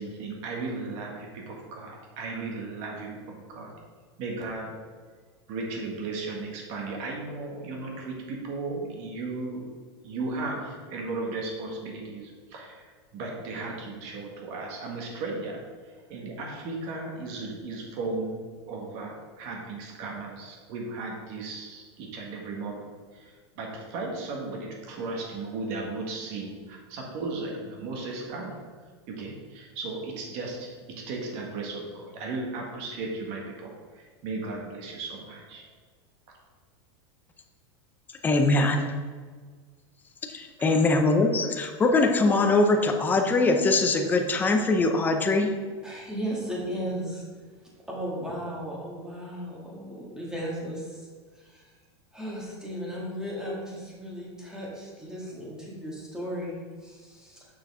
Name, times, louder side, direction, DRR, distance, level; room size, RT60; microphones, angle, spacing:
voice 1, 0.0-3.7 4.2-4.7 5.5-9.7 10.0-28.6 29.1-35.7 40.6-40.7, right 3 dB, 45° right, 0 dB, 1.8 m, -36 dB
voice 2, 38.2-38.9 40.2-45.5, left 2 dB, 10° left, 4 dB, 0.6 m, -22 dB
voice 3, 45.8-47.2 47.9-51.7 52.1-57.5, equal, 5° right, -5 dB, 1.7 m, -36 dB
6.9 x 6.2 x 3.6 m, 1.6 s
supercardioid pair, 150°, 14 cm